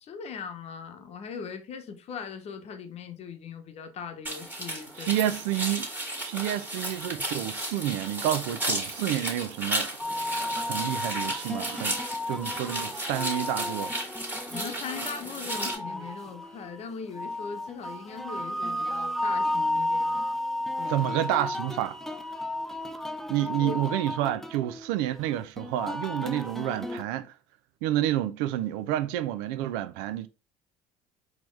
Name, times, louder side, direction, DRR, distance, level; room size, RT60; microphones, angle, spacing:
voice 1, 0.0-5.4 14.5-20.2 20.8-21.1 23.6-23.8, left 6 dB, 50° left, 0.9 m, -40 dB
sound 1, 4.2-15.7, right 1 dB, 15° right, 1.8 m, -34 dB
voice 2, 5.0-5.9 6.2-9.9 10.5-13.9 20.9-22.0 23.3-27.3 27.8-30.3, right 13 dB, 75° right, 0.4 m, -29 dB
sound 2, 10.0-27.0, left 1 dB, 5° left, 0.5 m, -33 dB
4.3 x 3.0 x 3.2 m
hypercardioid pair, 75°, 14 cm